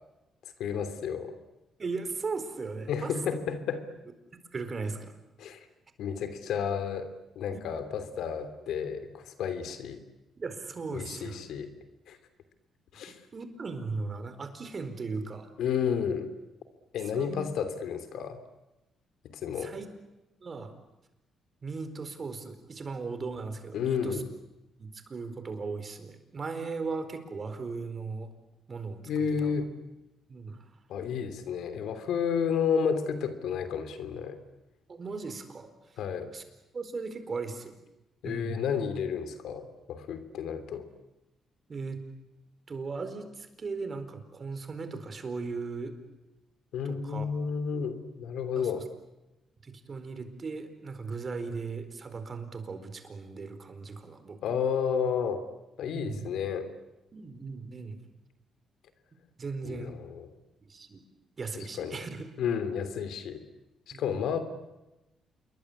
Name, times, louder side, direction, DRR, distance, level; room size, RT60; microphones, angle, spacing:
voice 1, 0.6-1.4 2.9-3.8 5.4-5.6 6.0-10.0 10.9-11.7 12.1-12.2 12.9-13.2 15.6-16.3 16.9-18.4 19.2-19.7 23.7-24.3 29.1-29.7 30.9-34.4 36.0-36.3 38.2-40.9 46.7-48.9 54.4-55.4 55.8-56.7 59.6-60.3 61.8-62.0 62.4-63.4 63.9-64.4, left 7 dB, 75° left, 10 dB, 3.1 m, -31 dB
voice 2, 1.8-3.1 4.5-5.1 7.5-7.6 10.4-11.4 13.1-15.5 17.1-17.4 19.6-19.9 20.4-20.7 21.6-24.2 24.8-28.3 28.7-29.5 30.3-30.6 34.9-35.7 36.3-36.4 36.7-37.7 38.2-38.6 41.7-42.0 42.7-45.9 46.8-47.2 48.6-48.8 49.6-54.6 55.9-56.3 57.1-58.0 59.4-59.9 60.7-61.0 61.4-62.2 63.9-64.1, right 4 dB, 40° right, 9 dB, 4.4 m, -37 dB
28.0 x 22.5 x 8.6 m, 0.98 s
cardioid pair, 90°, 0 cm